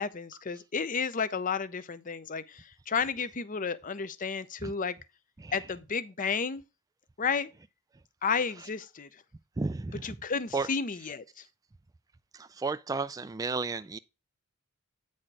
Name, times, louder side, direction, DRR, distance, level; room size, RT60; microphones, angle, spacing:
voice 1, 0.0-5.0 5.5-6.6 7.2-7.5 8.2-9.1 10.0-11.2, left 5 dB, 40° left, 0.6 m, -32 dB
voice 2, 9.6-10.2 10.5-10.7 12.3-14.0, right 3 dB, 15° right, 0.3 m, -33 dB
8.9 x 4.3 x 4.7 m
head